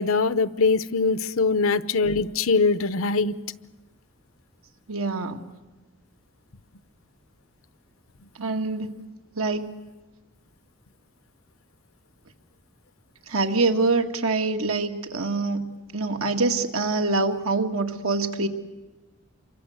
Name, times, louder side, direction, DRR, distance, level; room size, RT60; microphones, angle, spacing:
voice 1, 0.0-3.3, left 4 dB, 80° left, 14 dB, 0.9 m, -22 dB
voice 2, 4.9-5.4 8.4-9.1 9.4-9.7 13.3-15.7 15.9-18.5, right 3 dB, 90° right, 5 dB, 2.0 m, -25 dB
27.5 x 24.0 x 8.0 m, 1.1 s
head